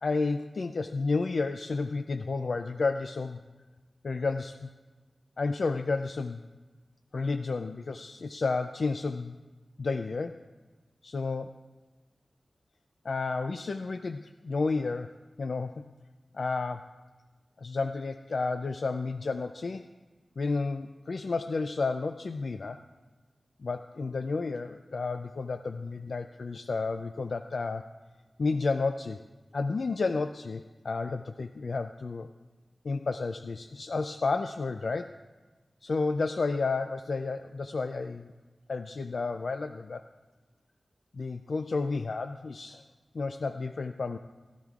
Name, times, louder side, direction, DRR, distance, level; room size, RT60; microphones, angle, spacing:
voice 1, 0.0-3.4 4.0-4.7 5.4-6.4 7.1-9.4 9.8-10.4 11.0-11.6 13.0-15.8 16.3-16.9 17.6-19.9 20.4-22.8 23.6-27.9 28.4-29.2 29.5-32.3 32.8-35.2 35.8-38.3 38.7-40.0 41.1-42.8 43.1-44.2, left 3 dB, 70° left, 8 dB, 0.3 m, -31 dB
16.5 x 12.0 x 2.4 m, 1.2 s
wide cardioid pair, 85°, 0 cm